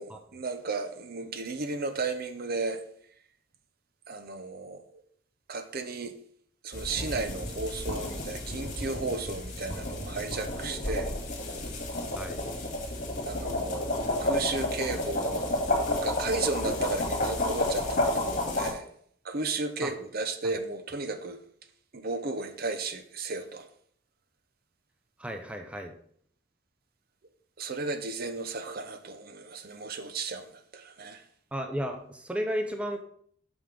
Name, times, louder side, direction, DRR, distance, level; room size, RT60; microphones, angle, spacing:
voice 1, 0.0-2.8 4.1-5.0 5.5-6.1 6.6-11.1 13.3-13.9 14.2-15.5 16.0-18.9 19.2-21.4 21.9-23.7 27.6-31.2, right 3 dB, 50° right, 0.7 m, -34 dB
sound 1, 6.7-18.7, left 1 dB, 40° left, 1.8 m, -31 dB
voice 2, 25.2-25.9 31.5-33.0, equal, 5° right, 0.6 m, -33 dB
6.1 x 5.6 x 5.1 m
head